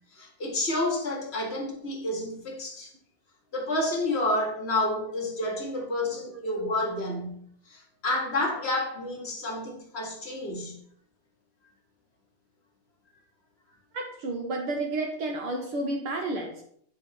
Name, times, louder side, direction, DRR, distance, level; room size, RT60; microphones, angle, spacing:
voice 1, 0.1-2.9 3.5-7.4 7.7-10.7, left 1 dB, 30° left, -1 dB, 1.3 m, -29 dB
voice 2, 13.9-16.6, right 2 dB, 65° right, 2 dB, 1.4 m, -31 dB
7.9 x 4.8 x 5.8 m, 0.64 s
omnidirectional pair, 3.7 m